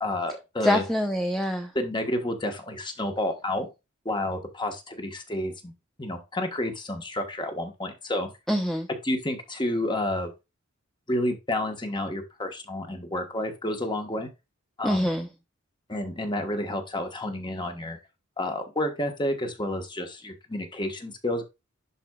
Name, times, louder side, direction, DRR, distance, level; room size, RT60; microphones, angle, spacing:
voice 1, 0.0-0.8 1.7-3.7 4.0-5.7 6.0-8.3 9.0-10.3 11.1-14.3 14.8-15.1 15.9-18.0 18.4-21.4, left 1 dB, 20° left, 1.3 m, -30 dB
voice 2, 0.6-1.7 8.5-8.9 14.8-15.3, left 1 dB, ahead, 0.6 m, -25 dB
11.0 x 4.4 x 2.4 m
head